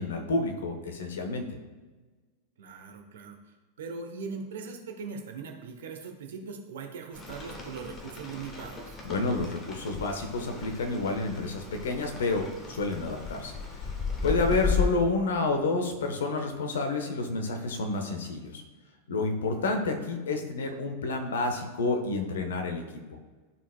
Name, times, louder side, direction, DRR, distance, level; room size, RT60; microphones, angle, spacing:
voice 1, 0.0-1.6 9.0-13.9 14.2-18.6 19.1-22.8 23.1-23.2, left 3 dB, 65° left, 4 dB, 1.0 m, -29 dB
voice 2, 2.6-9.0 14.3-14.6, right 5 dB, 60° right, 4 dB, 0.9 m, -40 dB
Rain, 7.1-14.9, left 5 dB, 25° left, 1.2 m, -35 dB
12.5 x 4.4 x 2.2 m, 1.3 s
figure-of-eight pair, 90°, 0 cm